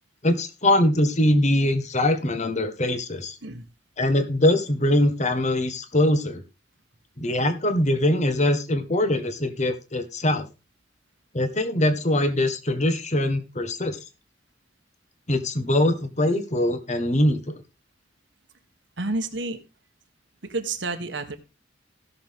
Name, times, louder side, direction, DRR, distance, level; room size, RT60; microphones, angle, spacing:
voice 1, 0.2-3.4 4.0-6.4 7.2-10.5 11.3-14.0 15.3-17.6, left 1 dB, 35° left, 9 dB, 1.5 m, -22 dB
voice 2, 19.0-19.6 20.4-21.4, right 3 dB, 65° right, 7 dB, 1.5 m, -29 dB
16.5 x 6.7 x 3.6 m, 0.28 s
head